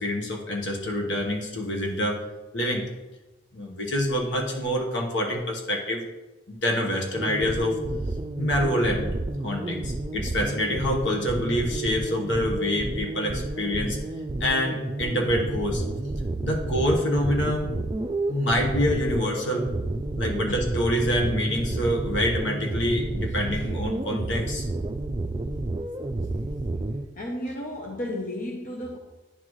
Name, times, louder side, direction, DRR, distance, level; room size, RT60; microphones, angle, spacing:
voice 1, 0.0-2.2 2.5-2.8 3.5-6.0 6.5-7.8 8.4-9.1 9.4-14.0 14.4-15.8 16.4-17.7 18.3-19.7 20.2-24.7, left 1 dB, 70° left, 0 dB, 1.2 m, -26 dB
sound 1, 7.1-27.0, right 2 dB, 25° right, 0.4 m, -30 dB
voice 2, 27.1-29.0, left 1 dB, 45° left, -1 dB, 0.7 m, -33 dB
10.0 x 3.9 x 3.1 m, 1.1 s
head